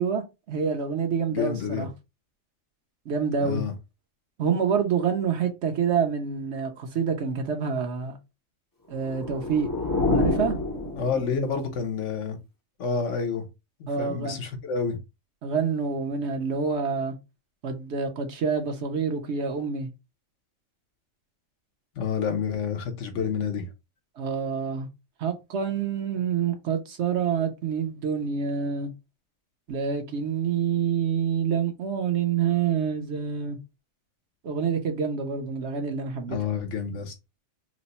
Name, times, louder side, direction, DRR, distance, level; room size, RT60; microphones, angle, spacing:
voice 1, 0.0-1.9 3.1-3.6 4.4-8.2 8.9-9.7 10.1-10.6 13.9-14.4 15.4-17.2 17.6-19.9 24.2-24.9 25.2-28.9 29.7-33.6 34.4-36.4, right 6 dB, 60° right, 0.9 m, -27 dB
voice 2, 1.3-1.9 3.4-3.7 11.0-12.4 12.8-13.5 13.8-15.0 22.0-23.6 36.3-37.1, left 6 dB, 65° left, 1.0 m, -29 dB
sound 1, 8.9-11.6, left 2 dB, 25° left, 0.5 m, -27 dB
3.0 x 2.0 x 4.0 m
omnidirectional pair, 1.4 m